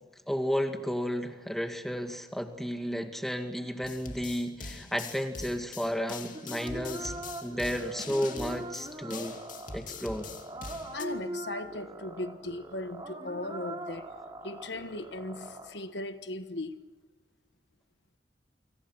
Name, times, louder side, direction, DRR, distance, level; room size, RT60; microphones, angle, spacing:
voice 1, 0.3-7.1 7.4-9.3 9.7-10.3, equal, ahead, 2.1 m, -32 dB
sound 1, 3.8-11.1, left 4 dB, 45° left, 2.6 m, -43 dB
sound 2, 6.3-15.7, right 1 dB, 25° right, 4.8 m, -42 dB
voice 2, 10.9-14.1 14.4-16.8, left 2 dB, 75° left, 1.4 m, -38 dB
28.0 x 26.5 x 6.3 m
head